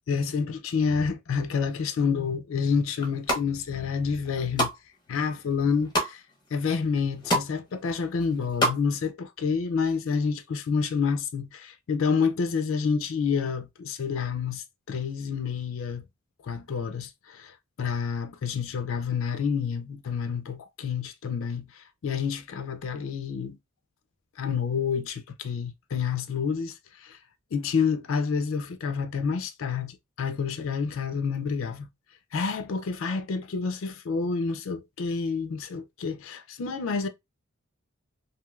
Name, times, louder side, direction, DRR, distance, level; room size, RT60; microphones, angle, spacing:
voice 1, 0.0-4.7 5.1-6.2 6.5-16.0 16.4-23.6 24.4-27.2 27.5-31.9 32.3-37.1, left 5 dB, 70° left, 0.4 m, -28 dB
sound 1, 3.0-3.4 4.0-4.8 5.2-6.1 6.6-6.7 6.9-7.5 7.8-8.8 9.1-9.2, equal, 20° left, 0.6 m, -27 dB
3.1 x 2.6 x 2.3 m
head